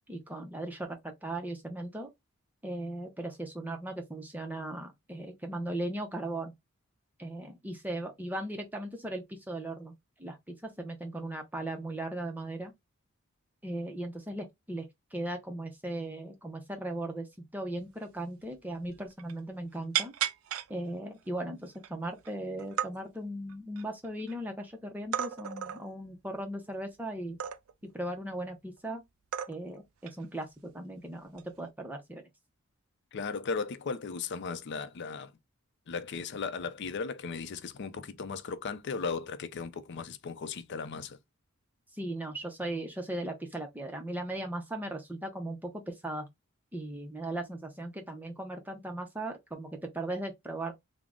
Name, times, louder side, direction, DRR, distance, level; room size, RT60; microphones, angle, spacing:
voice 1, 0.1-2.1 2.6-6.5 7.2-12.7 13.6-14.9 15.1-17.3 17.5-20.1 20.7-27.4 27.9-29.0 29.5-32.2 41.9-46.3 46.7-50.7, right 1 dB, 10° right, 0.5 m, -38 dB
sound 1, 18.0-18.1 18.4-18.6 18.8-19.4 19.9-20.7 21.3-21.4 21.7-22.3 22.6-22.9 23.5-24.3 25.1-25.8 27.4-27.9 28.8-28.9 29.3-29.8 30.1-30.3 31.3-31.6, right 10 dB, 85° right, 0.4 m, -34 dB
voice 2, 33.1-35.3 35.9-41.2, left 5 dB, 55° left, 0.4 m, -36 dB
3.6 x 2.0 x 3.5 m
head